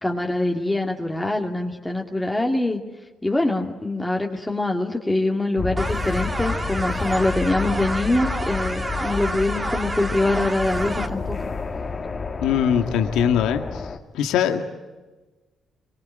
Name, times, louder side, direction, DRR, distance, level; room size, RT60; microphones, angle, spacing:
voice 1, 0.0-2.8 3.2-11.4, left 2 dB, 10° left, 1 dB, 2.3 m, -24 dB
sound 1, 5.6-14.0, left 4 dB, 35° left, 2.6 m, -30 dB
sound 2, 5.8-11.1, right 2 dB, 20° right, 2.5 m, -30 dB
voice 2, 12.4-13.9 14.1-14.7, left 8 dB, 90° left, 6 dB, 1.9 m, -21 dB
25.0 x 23.5 x 9.2 m, 1.2 s
cardioid pair, 90°, 0 cm